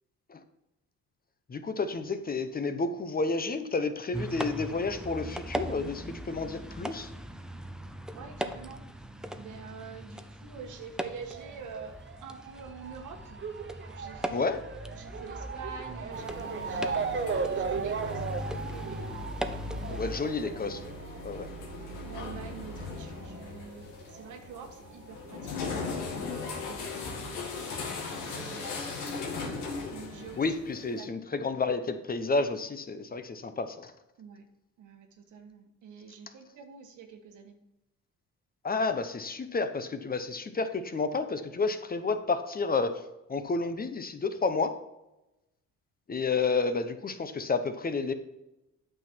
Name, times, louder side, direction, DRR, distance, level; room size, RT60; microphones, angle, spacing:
voice 1, 1.5-7.1 14.3-14.6 19.9-20.9 21.2-21.5 30.4-33.9 38.6-43.0 43.3-44.7 46.1-48.1, left 4 dB, 30° left, 9 dB, 0.9 m, -30 dB
sound 1, 4.1-20.2, equal, ahead, 0.7 m, -39 dB
voice 2, 8.1-9.1 9.3-13.4 13.9-14.5 14.8-17.2 17.6-19.1 19.7-21.0 21.8-28.6 29.9-31.1 34.2-34.4 34.8-37.5, right 6 dB, 80° right, 5 dB, 1.5 m, -47 dB
Motor vehicle (road) / Siren, 11.3-24.3 24.6-25.7 26.4-26.5 26.7-26.8, right 5 dB, 40° right, 0.8 m, -37 dB
sound 2, 16.1-31.1, left 3 dB, 85° left, 2.2 m, -39 dB
9.0 x 6.0 x 4.5 m, 0.93 s
cardioid pair, 90°, 30 cm